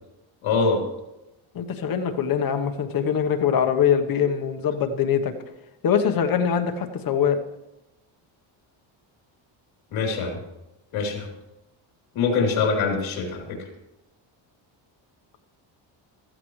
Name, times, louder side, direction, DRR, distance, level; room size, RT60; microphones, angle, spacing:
voice 1, 0.4-0.8 9.9-10.4 10.9-11.3 12.1-13.6, left 4 dB, 70° left, 0 dB, 3.4 m, -24 dB
voice 2, 1.5-5.3 5.8-7.4, left 7 dB, 45° left, 6 dB, 1.1 m, -23 dB
15.0 x 13.5 x 3.2 m, 0.93 s
cardioid pair, 155°, 49 cm